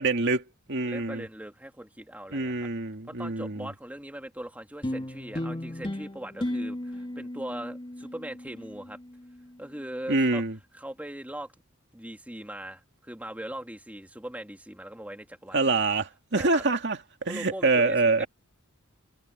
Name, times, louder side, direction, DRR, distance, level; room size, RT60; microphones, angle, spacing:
voice 1, 0.0-1.2 2.3-3.7 10.1-10.6 15.5-18.3, right 3 dB, 55° right, 2.4 m, -26 dB
voice 2, 0.8-2.7 3.1-9.0 9.6-10.4 10.7-11.5 11.9-15.8 16.3-16.6 17.3-18.3, right 1 dB, 5° right, 2.1 m, -40 dB
sound 1, 4.8-9.5, left 1 dB, 25° left, 2.0 m, -35 dB
head